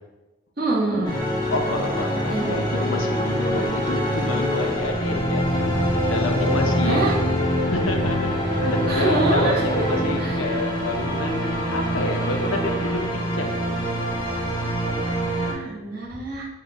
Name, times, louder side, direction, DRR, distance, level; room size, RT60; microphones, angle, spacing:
voice 1, 0.6-1.1 2.3-2.5 6.8-7.2 8.9-9.8 10.2-10.6 10.9-11.0 15.4-16.5, right 2 dB, 50° right, -5 dB, 1.1 m, -25 dB
sound 1, 1.0-15.5, equal, 20° left, 0.6 m, -24 dB
voice 2, 1.5-5.7 6.0-7.0 7.7-13.9 15.0-15.1, left 2 dB, 80° left, 4 dB, 0.6 m, -29 dB
5.0 x 2.2 x 4.1 m, 1.1 s
head